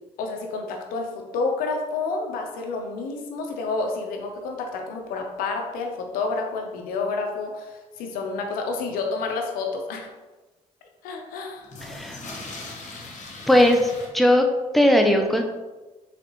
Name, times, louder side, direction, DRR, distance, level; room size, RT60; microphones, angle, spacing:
voice 1, 0.2-10.1 11.0-11.7, left 3 dB, 85° left, 3 dB, 0.7 m, -29 dB
sound 1, 5.2-5.3 6.0-6.1 11.6-14.1, left 2 dB, 55° left, 1.1 m, -39 dB
voice 2, 11.8-12.2 13.5-14.5 14.7-15.4, left 1 dB, ahead, 3 dB, 0.6 m, -18 dB
4.2 x 3.9 x 3.1 m, 1.2 s
supercardioid pair, 60°, 15 cm